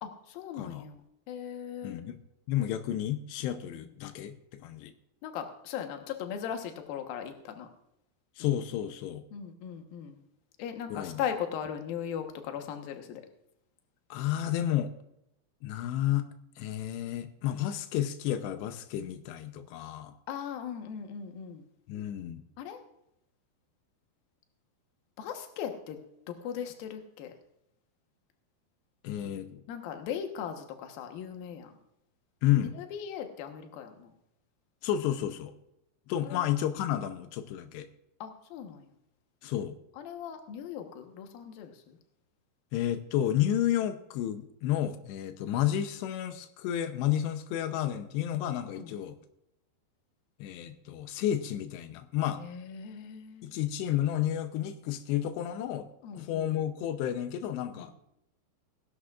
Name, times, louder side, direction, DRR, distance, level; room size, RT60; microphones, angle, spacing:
voice 1, 0.0-1.0 1.3-2.0 5.2-7.7 9.3-10.2 10.6-13.2 20.3-21.6 22.6-22.8 25.2-26.0 26.3-27.3 29.7-31.7 32.8-34.1 36.2-36.5 38.2-38.9 40.0-42.0 48.8-48.9 52.4-53.5 56.0-56.4 57.7-57.9, left 8 dB, 70° left, 6 dB, 2.7 m, -38 dB
voice 2, 0.5-0.9 1.8-2.2 2.5-4.9 8.4-9.2 10.9-11.2 14.1-14.9 15.6-16.3 16.6-20.1 21.9-22.4 29.0-29.6 32.4-32.8 34.8-35.5 36.1-37.9 39.4-39.8 42.7-49.2 50.4-52.4 53.4-55.9 56.1-58.0, left 11 dB, 90° left, 9 dB, 2.9 m, -31 dB
19.0 x 11.5 x 2.4 m, 0.82 s
omnidirectional pair, 4.8 m